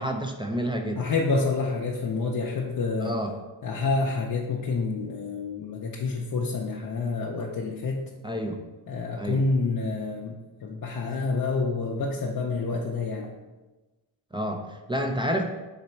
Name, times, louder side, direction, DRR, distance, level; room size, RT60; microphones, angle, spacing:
voice 1, 0.0-1.0 3.0-3.3 8.2-8.6 9.2-9.4 14.3-15.4, equal, 10° right, 3 dB, 0.4 m, -29 dB
voice 2, 1.0-3.2 3.6-8.0 8.9-13.3, left 3 dB, 45° left, -1 dB, 0.6 m, -28 dB
4.1 x 2.9 x 4.3 m, 1.1 s
cardioid pair, 60°, 47 cm